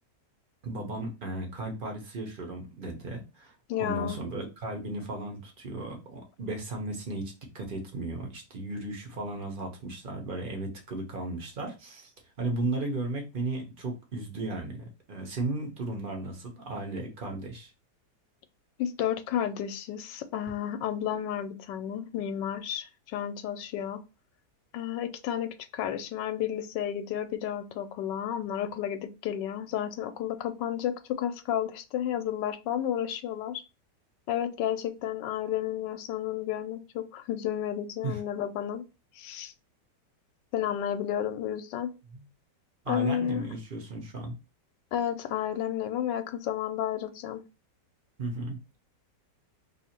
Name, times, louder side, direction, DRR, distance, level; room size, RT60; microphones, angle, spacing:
voice 1, 0.6-3.5 3.8-12.1 12.4-17.7 38.0-38.2 42.1-42.2 42.8-44.4 48.2-48.8, right 2 dB, 40° right, 3 dB, 0.7 m, -35 dB
voice 2, 3.7-4.2 18.8-24.0 24.7-33.6 34.3-38.8 39.2-39.5 40.5-41.9 42.9-43.4 44.9-47.4, left 10 dB, 80° left, 10 dB, 1.2 m, -32 dB
2.8 x 2.7 x 4.3 m, 0.28 s
omnidirectional pair, 1.9 m